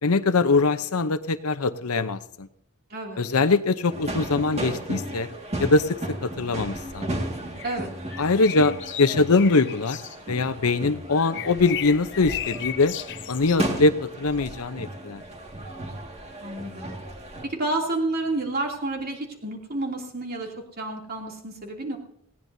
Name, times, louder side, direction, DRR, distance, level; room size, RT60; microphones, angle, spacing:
voice 1, 0.0-2.5 3.2-5.3 5.6-7.1 8.2-10.0 10.3-12.9 13.3-15.2, left 3 dB, 90° left, 10 dB, 0.8 m, -22 dB
sound 1, 3.9-17.4, right 1 dB, 30° right, 2.1 m, -35 dB
sound 2, 7.6-10.2 11.1-13.6, left 11 dB, 55° left, 0.6 m, -35 dB
voice 2, 16.4-16.9 17.4-22.0, right 2 dB, 45° right, 1 dB, 2.9 m, -30 dB
19.5 x 17.0 x 2.8 m, 0.74 s
head